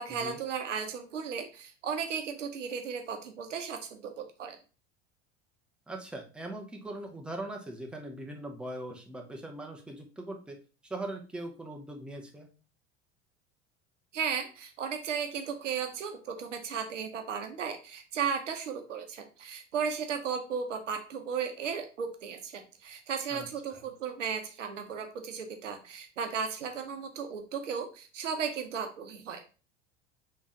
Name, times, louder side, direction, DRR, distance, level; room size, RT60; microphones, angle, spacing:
voice 1, 0.0-4.6 14.1-29.4, right 6 dB, 80° right, 6 dB, 0.8 m, -35 dB
voice 2, 5.9-10.6 10.8-12.5 23.3-23.5 23.7-23.8, right 1 dB, 5° right, 2 dB, 0.7 m, -40 dB
3.6 x 3.1 x 3.8 m, 0.34 s
figure-of-eight pair, 75°, 37 cm